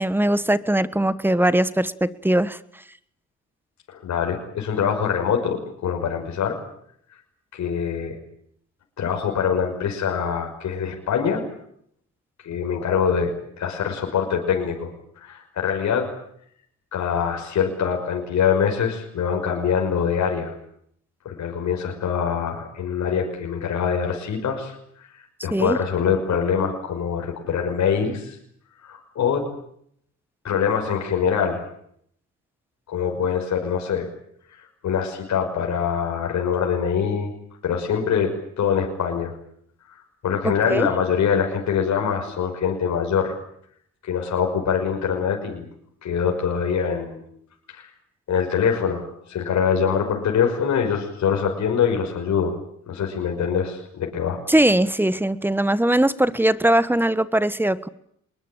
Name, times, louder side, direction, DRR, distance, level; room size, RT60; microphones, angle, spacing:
voice 1, 0.0-2.6 25.5-25.8 40.4-40.9 54.5-57.9, right 1 dB, 5° right, 16 dB, 1.4 m, -20 dB
voice 2, 3.9-5.6 5.8-6.6 7.5-8.2 9.0-11.4 12.4-14.9 15.2-16.1 16.9-20.5 21.2-24.7 25.4-28.4 28.8-29.4 30.4-31.7 32.9-34.1 34.8-37.3 37.6-39.3 39.9-43.4 44.0-45.7 46.0-47.2 47.7-47.9 48.3-52.6 52.9-54.4, left 7 dB, 65° left, 1 dB, 5.7 m, -24 dB
24.5 x 21.5 x 9.0 m, 0.69 s
cardioid pair, 90°, 30 cm